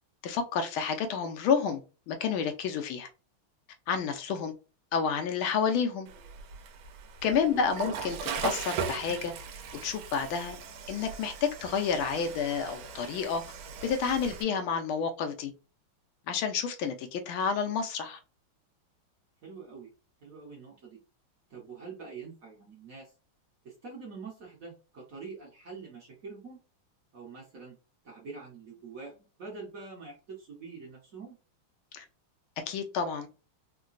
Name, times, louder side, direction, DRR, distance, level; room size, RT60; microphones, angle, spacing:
voice 1, 0.2-1.8 2.1-3.1 3.9-4.5 4.9-6.1 7.2-9.3 9.8-10.6 10.9-13.4 13.8-15.5 16.3-18.2 31.9-32.0 32.7-33.3, left 6 dB, 75° left, 1.4 m, -30 dB
Water / Toilet flush, 6.1-14.4, right 6 dB, 80° right, 1.4 m, -39 dB
voice 2, 19.4-19.9 20.2-21.0 21.5-23.1 23.6-26.6 27.1-27.8 28.0-31.4, right 4 dB, 50° right, 1.1 m, -45 dB
3.7 x 2.1 x 2.4 m
omnidirectional pair, 2.3 m